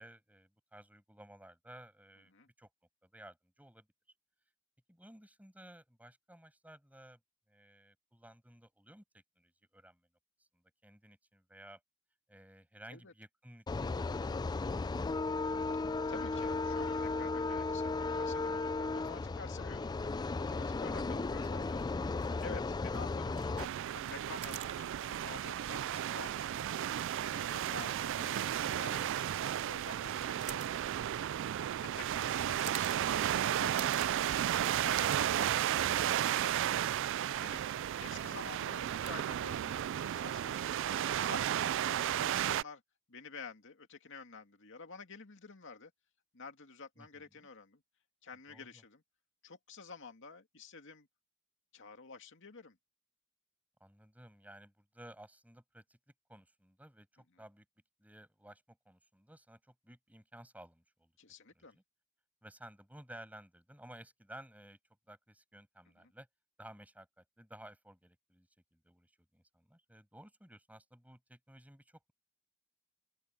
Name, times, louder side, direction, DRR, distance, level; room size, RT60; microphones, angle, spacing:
voice 1, 0.0-2.3 2.6-2.7 3.0-3.9 4.9-7.2 7.5-10.1 10.5-11.8 12.3-14.0 15.1-15.6 47.0-47.5 48.5-48.8 53.8-56.0 56.3-57.6 58.0-61.1 61.5-61.8 62.4-64.8 65.1-66.3 66.6-72.1, right 1 dB, 5° right, 8.0 m, -56 dB
sound 1, 13.7-23.6, left 3 dB, 20° left, 0.3 m, -35 dB
voice 2, 16.1-20.0 20.4-22.0 22.4-26.6 27.2-30.7 31.9-36.9 37.3-37.7 38.0-42.8 43.1-45.9 46.3-47.8 48.2-49.0 49.4-51.1 51.7-52.8 61.2-61.8 66.0-66.1, left 4 dB, 60° left, 2.3 m, -50 dB
sound 2, 21.1-40.2, right 8 dB, 35° right, 3.2 m, -54 dB
sound 3, 23.6-42.6, right 10 dB, 65° right, 0.3 m, -33 dB
open air
head